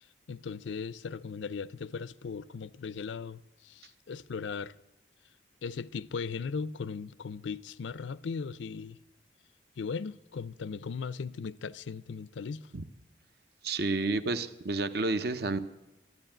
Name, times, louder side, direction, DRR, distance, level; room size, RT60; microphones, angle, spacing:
voice 1, 0.0-4.7 5.6-9.0 9.8-12.7, left 5 dB, 80° left, 0.5 m, -38 dB
voice 2, 13.6-15.6, right 3 dB, 55° right, 0.7 m, -30 dB
12.5 x 9.7 x 8.9 m
head